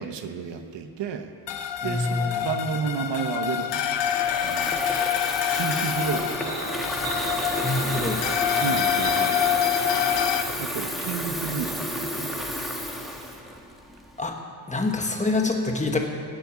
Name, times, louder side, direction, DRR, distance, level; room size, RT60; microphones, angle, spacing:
voice 1, 0.0-1.3 1.8-4.0 4.4-4.9 5.5-6.4 8.6-10.0 10.6-12.6, right 6 dB, 80° right, 7 dB, 1.2 m, -32 dB
sound 1, 1.5-10.4, left 10 dB, 85° left, 1.0 m, -26 dB
voice 2, 1.8-2.5 7.6-8.3 8.5-8.8 14.2-14.4 14.7-16.0, left 2 dB, 15° left, 2 dB, 1.3 m, -26 dB
Water tap faucet / Fill (with liquid), 3.9-14.2, equal, ahead, 1.3 m, -32 dB
sound 2, 6.4-11.7, right 2 dB, 50° right, 3.4 m, -35 dB
19.0 x 7.9 x 8.7 m, 2.3 s
wide cardioid pair, 180°, 43 cm